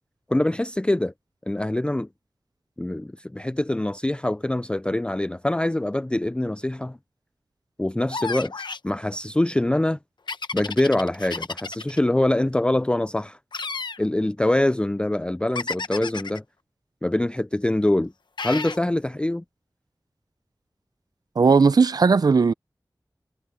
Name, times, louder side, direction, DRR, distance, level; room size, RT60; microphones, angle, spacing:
voice 1, 0.3-1.1 1.5-2.1 2.8-7.0 7.8-10.0 10.5-13.4 14.0-16.4 17.0-18.1 18.4-19.4, left 1 dB, 15° left, 0.4 m, -24 dB
sound 1, 8.1-8.9 10.3-12.0 13.5-14.0 15.5-16.4 18.4-18.8, left 4 dB, 90° left, 1.0 m, -32 dB
voice 2, 21.4-22.5, right 5 dB, 60° right, 0.4 m, -17 dB
wide cardioid pair, 75°, 7 cm